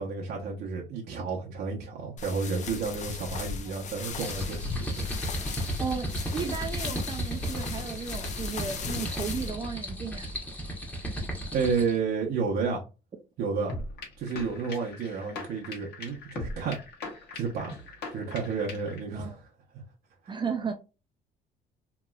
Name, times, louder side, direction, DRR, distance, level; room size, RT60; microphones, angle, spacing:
voice 1, 0.0-5.1 11.5-12.8 13.4-13.7 14.2-16.8 17.3-17.7 18.1-19.4, right 5 dB, 65° right, 0.7 m, -31 dB
sound 1, 2.2-9.5, left 5 dB, 45° left, 0.5 m, -37 dB
sound 2, 4.1-12.0, equal, 10° left, 1.0 m, -35 dB
voice 2, 5.8-10.3 19.1-19.4 20.3-20.7, right 5 dB, 30° right, 0.4 m, -34 dB
sound 3, 13.7-19.0, left 2 dB, 75° left, 1.2 m, -40 dB
2.9 x 2.9 x 2.3 m
cardioid pair, 110°, 17 cm